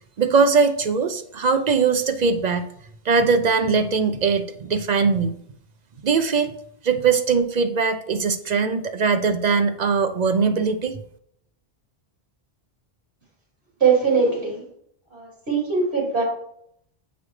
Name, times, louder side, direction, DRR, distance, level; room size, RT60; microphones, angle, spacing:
voice 1, 0.2-2.6 3.0-5.4 6.0-6.5 6.8-11.0, right 5 dB, 55° right, 9 dB, 0.5 m, -21 dB
voice 2, 13.8-14.6 15.1-16.2, right 5 dB, 85° right, -4 dB, 3.2 m, -21 dB
8.6 x 5.0 x 3.2 m, 0.70 s
omnidirectional pair, 1.1 m